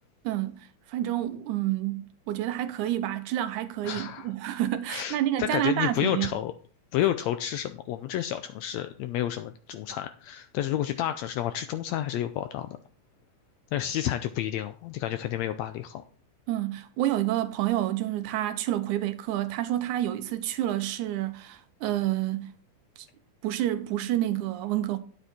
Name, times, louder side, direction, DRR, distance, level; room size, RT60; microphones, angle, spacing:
voice 1, 0.2-6.3 16.5-22.5 23.4-25.0, right 13 dB, 80° right, 2.0 m, -29 dB
voice 2, 3.8-4.3 4.9-6.5 6.9-12.8 13.7-16.0, left 12 dB, 90° left, 1.5 m, -30 dB
9.1 x 7.9 x 4.2 m
omnidirectional pair, 3.6 m